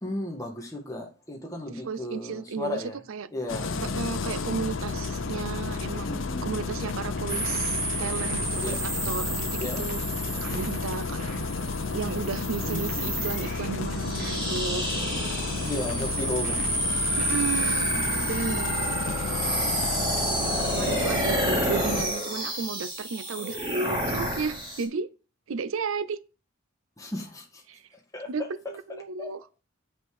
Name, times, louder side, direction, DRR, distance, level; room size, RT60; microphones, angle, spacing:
voice 1, 0.0-3.0 3.3-3.8 6.0-6.6 8.6-8.8 9.6-9.8 10.3-10.6 12.6-13.2 15.6-16.6 27.0-27.6 28.1-28.3 29.2-29.4, left 1 dB, 15° left, 1.7 m, -35 dB
voice 2, 1.7-2.8 3.1-3.3 4.0-10.0 10.4-11.2 11.9-14.8 17.2-19.0 20.7-25.1 25.5-26.2 27.7-27.8 28.3-29.4, right 5 dB, 75° right, 0.5 m, -33 dB
Engine starting, 3.5-22.0, left 3 dB, 70° left, 0.7 m, -32 dB
sound 1, 6.9-9.4 9.9-12.4 12.9-15.4 15.9-18.4, right 1 dB, 40° right, 2.0 m, -43 dB
sound 2, 7.3-24.8, right 1 dB, 20° right, 3.2 m, -30 dB
8.1 x 5.2 x 4.8 m
head